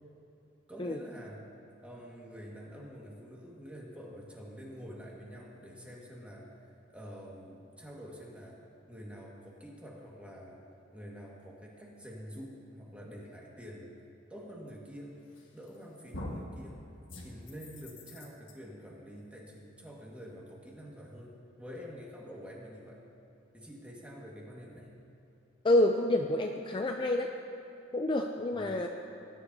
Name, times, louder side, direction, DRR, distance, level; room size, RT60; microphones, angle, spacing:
voice 1, 0.7-1.4 1.8-6.5 6.9-8.6 8.9-10.6 10.9-13.9 14.3-15.2 15.5-16.8 17.2-21.3 21.6-23.0 23.5-24.9 28.6-28.8, equal, 5° right, -3 dB, 1.7 m, -47 dB
sound 1, 15.4-15.8 16.1-16.5 17.1-18.5, left 1 dB, 70° left, 1.5 m, -43 dB
voice 2, 25.6-27.4 27.9-28.9, left 1 dB, 25° left, 3 dB, 0.4 m, -28 dB
19.5 x 9.9 x 2.7 m, 2.8 s
head